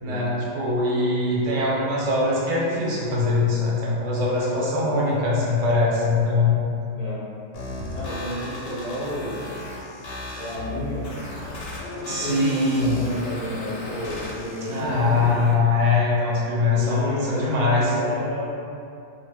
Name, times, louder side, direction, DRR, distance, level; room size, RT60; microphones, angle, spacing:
voice 1, 0.0-6.7 12.1-13.0 14.6-17.9, left 3 dB, 85° right, -5 dB, 1.0 m, -22 dB
sound 1, 7.5-15.5, left 2 dB, 90° left, 0.9 m, -35 dB
voice 2, 7.9-9.4 10.3-11.1 11.9-15.4 16.8-18.5, left 1 dB, 50° left, -12 dB, 0.4 m, -31 dB
2.1 x 2.0 x 3.3 m, 2.6 s
omnidirectional pair, 1.3 m